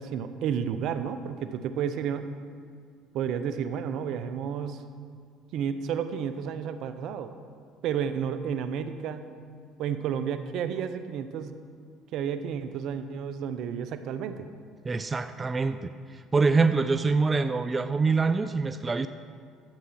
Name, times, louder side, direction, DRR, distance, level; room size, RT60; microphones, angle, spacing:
voice 1, 0.0-2.3 3.1-4.8 5.5-7.3 7.8-9.3 9.8-11.6 12.1-14.5, right 8 dB, 65° right, 10 dB, 0.7 m, -31 dB
voice 2, 14.8-19.1, right 4 dB, 25° right, 11 dB, 0.4 m, -25 dB
12.0 x 8.1 x 5.7 m, 2.1 s
supercardioid pair, 75°, 0 cm